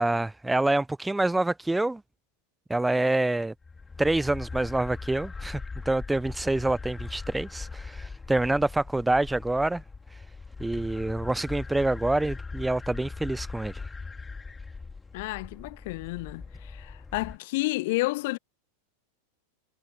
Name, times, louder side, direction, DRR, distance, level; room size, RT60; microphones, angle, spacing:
voice 1, 0.0-2.0 2.7-3.5 4.0-9.8 10.6-13.8, right 2 dB, 5° right, 0.6 m, -26 dB
sound 1, 3.6-17.4, left 4 dB, 10° left, 4.5 m, -40 dB
voice 2, 15.1-16.4 16.7-18.4, left 21 dB, 50° left, 1.3 m, -30 dB
figure-of-eight pair, 90°, 0 cm